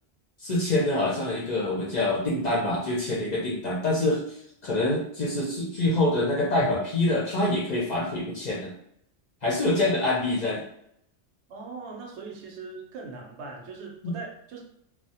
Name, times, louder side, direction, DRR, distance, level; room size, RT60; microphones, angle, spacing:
voice 1, 0.4-4.2 4.6-8.7 9.4-10.6 14.0-14.1, left 2 dB, 50° left, -5 dB, 0.6 m, -25 dB
voice 2, 11.5-14.6, right 4 dB, 80° right, 0 dB, 0.9 m, -40 dB
2.2 x 2.1 x 2.7 m, 0.72 s
omnidirectional pair, 1.2 m